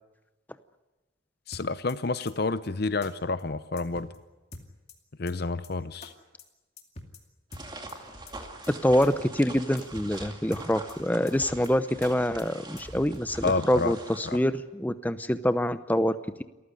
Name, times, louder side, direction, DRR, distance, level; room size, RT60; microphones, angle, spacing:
voice 1, 1.5-4.1 5.2-6.1 13.4-13.9 14.2-14.4, left 3 dB, 50° left, 14 dB, 0.7 m, -29 dB
sound 1, 1.5-1.9 2.3-2.4 2.6-2.7 3.0-3.1 3.4-3.5 3.8-4.2 4.5-4.9 5.3-5.4 5.6-5.7 6.0-6.1 6.4-6.5 6.8-7.2 7.5-7.9 8.3-8.4 8.6-8.7 9.0-9.1 9.4-9.5 9.8-10.2 10.5-10.9 11.3-11.4 11.6-11.7 12.0-12.1 12.4-12.5 12.8-13.2, left 2 dB, 30° left, 2.4 m, -44 dB
sound 2, 7.5-14.4, right 2 dB, 20° right, 2.3 m, -43 dB
voice 2, 8.7-16.4, equal, 10° left, 12 dB, 0.7 m, -26 dB
28.0 x 14.5 x 9.9 m, 1.1 s
head